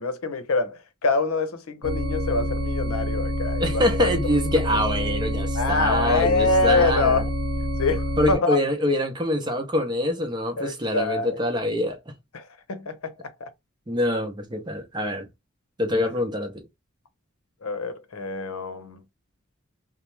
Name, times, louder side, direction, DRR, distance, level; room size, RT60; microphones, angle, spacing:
voice 1, 0.0-4.1 4.7-4.8 5.5-7.2 7.8-8.6 10.6-11.4 12.3-13.5 17.6-19.0, left 3 dB, 85° left, 0.7 m, -25 dB
sound 1, 1.8-8.4, left 1 dB, 55° right, 0.9 m, -27 dB
voice 2, 3.6-7.2 8.2-12.1 13.9-15.3 15.8-16.6, left 1 dB, 20° right, 0.6 m, -25 dB
2.8 x 2.0 x 3.1 m
head